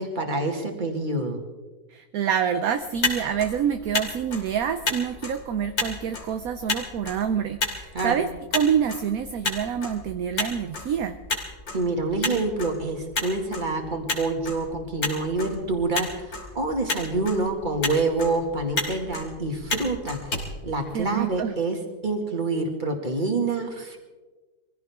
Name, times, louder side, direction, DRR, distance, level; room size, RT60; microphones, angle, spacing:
voice 1, 0.0-1.4 7.9-8.3 11.7-21.8 22.0-24.0, right 2 dB, 30° right, 2 dB, 2.3 m, -27 dB
voice 2, 1.9-11.2 20.9-21.5, right 8 dB, 65° right, 8 dB, 1.1 m, -27 dB
Motor vehicle (road), 2.8-21.4, left 3 dB, 65° left, 3.4 m, -33 dB
24.0 x 16.0 x 3.6 m, 1.3 s
omnidirectional pair, 1.7 m